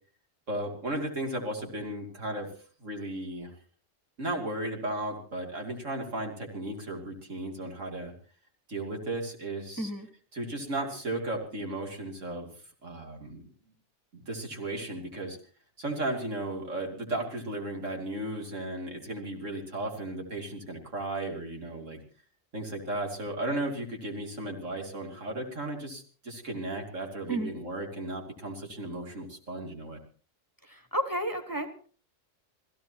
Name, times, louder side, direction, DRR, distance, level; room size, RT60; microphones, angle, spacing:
voice 1, 0.5-2.5 2.8-3.5 4.2-8.1 8.7-9.9 10.3-12.5 12.8-13.4 14.1-15.4 15.8-22.0 22.5-30.0, right 1 dB, 80° right, 2 dB, 3.3 m, -35 dB
voice 2, 30.6-31.9, right 1 dB, 15° left, 8 dB, 1.3 m, -32 dB
27.5 x 15.5 x 2.9 m, 0.40 s
omnidirectional pair, 1.3 m